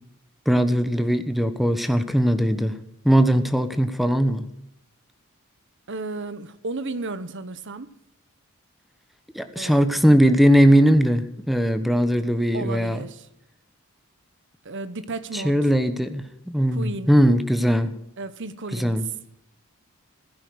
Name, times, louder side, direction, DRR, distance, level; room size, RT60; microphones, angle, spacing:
voice 1, 0.5-2.8 3.0-4.4 9.3-13.0 15.3-17.9 18.7-19.0, equal, ahead, 10 dB, 1.1 m, -20 dB
voice 2, 5.9-7.9 9.6-10.0 12.5-13.3 14.6-15.6 16.7-17.2 18.2-19.0, right 3 dB, 55° right, 14 dB, 1.1 m, -33 dB
16.0 x 10.0 x 6.4 m, 0.79 s
head